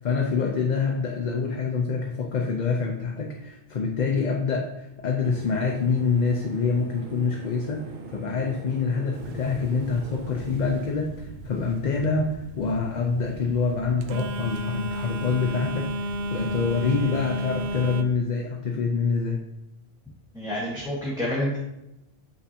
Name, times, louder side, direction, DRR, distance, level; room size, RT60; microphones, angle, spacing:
voice 1, 0.0-19.4, left 5 dB, 50° left, 1 dB, 0.7 m, -26 dB
sound 1, 5.2-10.5, right 5 dB, 55° right, 0.7 m, -41 dB
Telephone, 9.1-18.0, right 1 dB, 80° right, 0.9 m, -34 dB
voice 2, 20.3-21.6, left 1 dB, 5° right, -7 dB, 1.2 m, -28 dB
7.7 x 5.7 x 2.8 m, 0.89 s
omnidirectional pair, 1.1 m